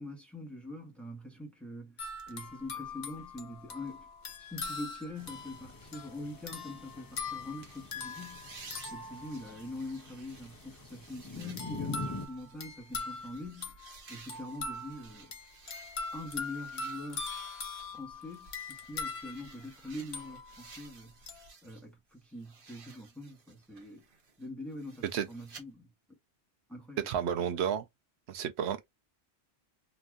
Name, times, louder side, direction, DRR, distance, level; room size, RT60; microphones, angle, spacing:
voice 1, 0.0-2.0 2.3-4.1 4.4-8.4 8.9-13.8 14.1-15.3 16.1-17.3 17.9-21.1 21.6-24.0 24.4-25.9 26.7-27.1, left 1 dB, ahead, 1.1 m, -44 dB
sound 1, 2.0-9.9 11.6-20.8 21.3-21.5, left 4 dB, 50° left, 1.0 m, -42 dB
sound 2, 5.2-12.3, left 4 dB, 30° left, 0.5 m, -45 dB
sound 3, 7.6-21.9 22.2-25.6, right 4 dB, 55° right, 1.1 m, -55 dB
voice 2, 27.0-27.9 28.3-28.8, right 8 dB, 85° right, 0.9 m, -31 dB
3.1 x 2.5 x 2.2 m
omnidirectional pair, 1.1 m